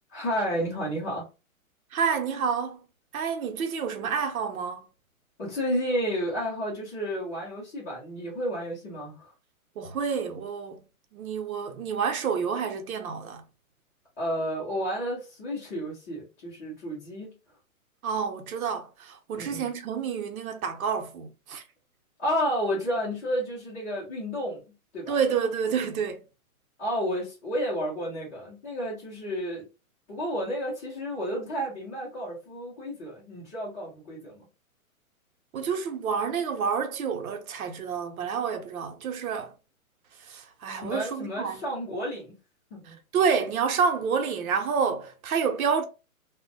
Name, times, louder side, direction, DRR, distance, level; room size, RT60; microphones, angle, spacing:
voice 1, 0.1-1.3 5.4-9.3 14.2-17.3 19.3-19.7 22.2-24.6 24.9-25.1 26.8-29.6 30.1-34.5 40.8-42.3 42.7-43.0, equal, 15° left, 0.5 m, -31 dB
voice 2, 1.9-2.8 3.1-4.9 9.8-10.8 11.1-13.4 18.0-21.6 25.1-26.2 35.5-39.5 40.2-41.6 42.8-45.8, right 6 dB, 75° right, 0.8 m, -29 dB
2.2 x 2.1 x 2.6 m
hypercardioid pair, 150°, 43 cm